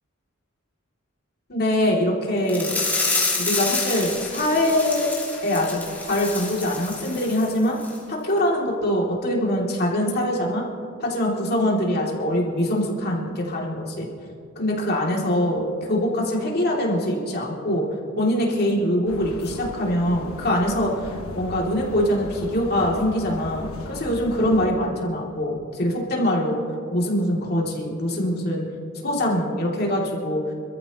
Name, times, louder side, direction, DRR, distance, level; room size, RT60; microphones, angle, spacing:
voice 1, 1.5-2.8 3.4-5.1 5.4-7.8 8.1-10.6 11.0-14.1 14.6-17.8 18.2-26.6 26.9-28.6 29.0-30.4, left 1 dB, 50° left, -2 dB, 2.8 m, -23 dB
sound 1, 2.5-7.5 7.8-8.0 8.4-8.5, left 3 dB, 10° left, 3.2 m, -28 dB
sound 2, 19.1-24.7, left 1 dB, 80° left, 1.4 m, -37 dB
26.5 x 14.0 x 3.1 m, 2.5 s
head